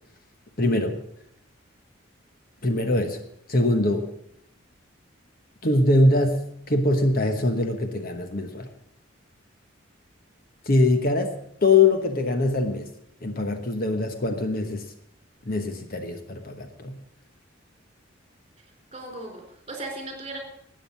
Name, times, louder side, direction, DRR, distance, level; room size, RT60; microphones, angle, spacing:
voice 1, 0.6-1.0 2.6-3.2 3.5-4.1 5.6-6.4 6.7-8.7 10.7-11.3 11.6-12.9 13.2-14.8 15.5-17.0, left 2 dB, 45° left, 6 dB, 1.2 m, -22 dB
voice 2, 18.9-20.4, right 2 dB, 30° right, 2 dB, 4.0 m, -37 dB
13.0 x 8.9 x 7.4 m, 0.72 s
head